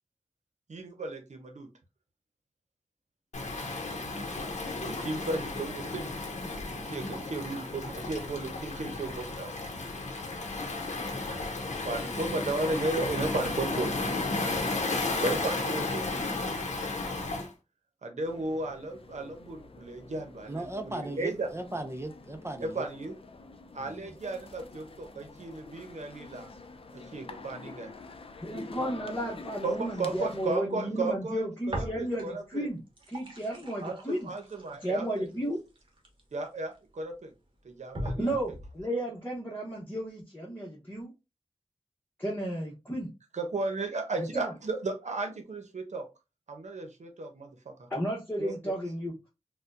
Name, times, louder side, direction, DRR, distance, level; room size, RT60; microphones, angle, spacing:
voice 1, 0.7-1.7 4.8-6.1 6.7-9.5 11.8-14.0 15.2-16.1 18.0-21.5 22.6-23.2 23.7-26.5 26.9-27.9 29.6-32.7 33.8-35.3 36.3-37.3 37.6-38.4 43.3-46.1 46.5-47.9 48.4-48.6, right 2 dB, 80° right, 0.8 m, -34 dB
Waves surf, 3.3-17.5, left 3 dB, 85° left, 0.8 m, -33 dB
sound 1, 18.2-30.6, left 3 dB, 50° left, 0.5 m, -47 dB
voice 2, 20.5-22.8 23.7-24.1, right 1 dB, 20° right, 0.5 m, -37 dB
voice 3, 28.4-32.8 33.1-34.3 34.8-35.6 38.2-41.1 42.2-43.1 44.2-44.5 47.9-49.1, right 1 dB, 15° left, 1.0 m, -33 dB
sound 2, 31.7-32.5 32.8-36.7 37.3-37.4 37.9-38.8, equal, 45° right, 1.0 m, -40 dB
4.2 x 2.2 x 2.5 m
wide cardioid pair, 65°, 12 cm